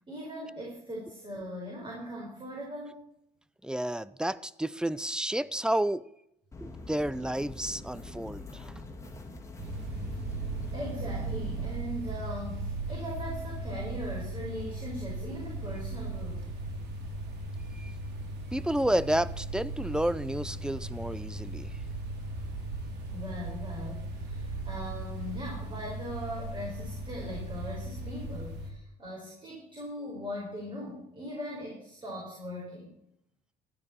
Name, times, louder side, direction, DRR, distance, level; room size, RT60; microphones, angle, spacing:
voice 1, 0.1-3.1 10.7-16.5 23.1-33.0, equal, 30° right, 4.6 m, -40 dB
voice 2, 3.6-6.0 6.6-8.7 17.7-17.9 18.5-21.7, right 1 dB, 5° right, 0.4 m, -31 dB
sound 1, 6.5-11.7, left 2 dB, 15° left, 2.1 m, -43 dB
sound 2, 9.6-28.7, right 2 dB, 80° right, 3.1 m, -37 dB
15.0 x 9.9 x 4.4 m
cardioid pair, 110°, 17 cm